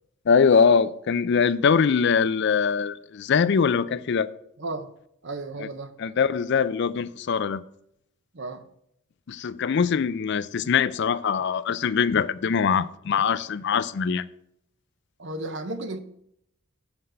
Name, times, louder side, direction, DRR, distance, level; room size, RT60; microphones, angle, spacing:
voice 1, 0.3-4.3 5.6-5.7 6.0-7.6 9.3-14.3, left 6 dB, 55° left, 0.4 m, -22 dB
voice 2, 4.6-4.9 5.2-5.9 8.3-8.6 15.2-16.0, right 2 dB, 55° right, 0.8 m, -34 dB
7.8 x 5.8 x 5.6 m
head